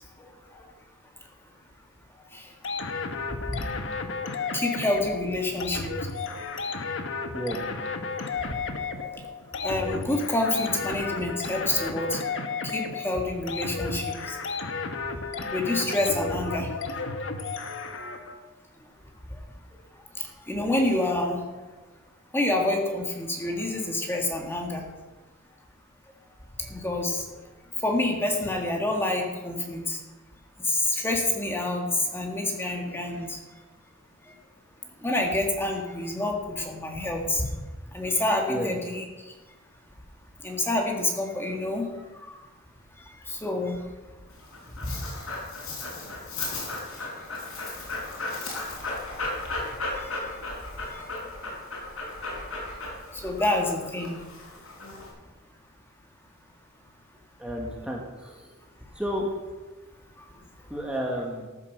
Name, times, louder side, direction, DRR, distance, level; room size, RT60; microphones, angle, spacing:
sound 1, 2.6-18.4, left 4 dB, 65° left, 1.1 m, -33 dB
voice 1, 4.5-6.0 9.6-12.2 12.7-14.4 15.5-16.7 20.5-21.4 22.3-24.8 26.7-27.2 27.8-30.0 30.7-33.4 35.0-37.4 37.9-39.0 40.4-41.9 43.3-43.8 44.8-45.0 49.9-50.2 50.8-50.9 53.2-54.2, left 1 dB, 10° left, 1 dB, 1.8 m, -27 dB
Dog, 44.3-55.1, left 2 dB, 80° left, 4.8 m, -35 dB
voice 2, 57.4-58.5 58.9-59.3 60.7-61.5, equal, 5° right, -1 dB, 1.6 m, -31 dB
14.0 x 7.3 x 6.5 m, 1.2 s
head